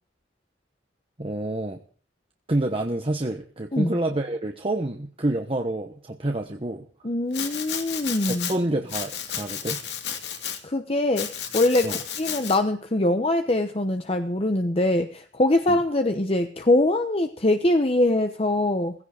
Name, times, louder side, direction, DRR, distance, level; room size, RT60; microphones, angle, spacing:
voice 1, 1.2-1.8 2.5-6.8 7.4-7.5 8.3-9.8 11.8-12.0 15.7-15.8, right 1 dB, 30° right, 3 dB, 1.1 m, -28 dB
voice 2, 7.0-8.5 10.6-18.9, left 1 dB, 30° left, 6 dB, 1.0 m, -23 dB
Domestic sounds home sounds, 7.3-8.5 8.9-10.6 11.2-12.6, left 8 dB, 65° left, 2.4 m, -32 dB
17.0 x 16.0 x 5.0 m, 0.43 s
head